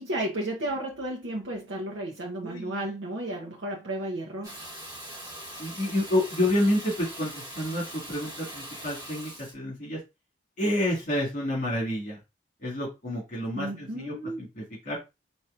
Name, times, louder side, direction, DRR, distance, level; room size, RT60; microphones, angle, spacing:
voice 1, 0.0-4.6 13.5-14.4, right 1 dB, 85° right, 0.9 m, -33 dB
voice 2, 2.4-2.8 5.6-10.0 10.6-12.2 12.6-15.0, left 1 dB, 45° left, 1.9 m, -29 dB
Water tap faucet / Bathtub (filling or washing), 4.4-9.5, right 1 dB, 20° right, 1.3 m, -41 dB
4.3 x 2.9 x 2.5 m
head